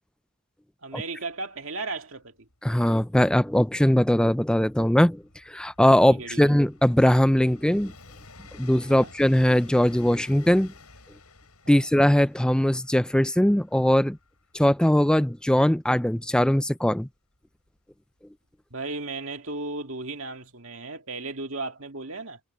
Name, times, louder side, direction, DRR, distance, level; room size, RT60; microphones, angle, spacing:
voice 1, 0.8-2.5 6.1-6.6 8.9-9.1 11.6-11.9 18.7-22.4, right 3 dB, 65° right, 2.3 m, -35 dB
Train, 1.6-1.7 1.9-18.5 19.5-19.6, left 3 dB, 85° left, 7.8 m, -52 dB
voice 2, 2.6-7.9 8.5-10.7 11.7-14.2 14.5-17.1, equal, 5° left, 0.4 m, -21 dB
head